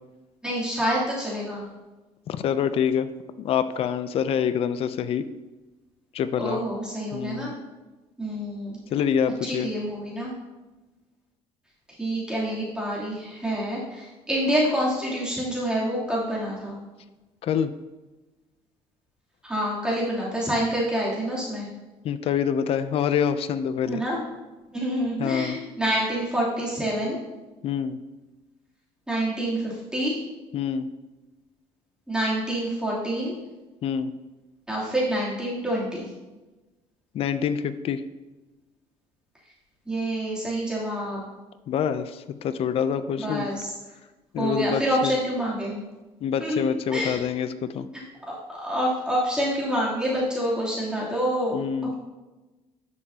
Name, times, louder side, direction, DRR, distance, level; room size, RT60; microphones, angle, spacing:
voice 1, 0.4-1.7 6.4-7.5 8.2-8.8 9.5-10.3 12.0-16.8 19.4-21.7 23.8-24.2 24.7-27.2 29.1-30.2 32.1-33.3 34.7-36.1 39.9-41.2 43.2-43.7 44.4-45.8 46.4-47.2 48.5-51.6, equal, 5° right, -7 dB, 3.0 m, -27 dB
voice 2, 2.3-3.1 3.4-5.3 6.1-6.6 7.1-7.5 8.9-9.7 17.4-17.7 22.0-24.0 25.2-25.6 27.6-28.0 30.5-30.9 33.8-34.1 37.1-38.0 41.7-43.5 44.3-45.1 46.2-47.9 51.5-51.9, left 8 dB, 50° left, 12 dB, 0.5 m, -26 dB
11.0 x 6.6 x 2.8 m, 1.1 s
cardioid pair, 120°, 12 cm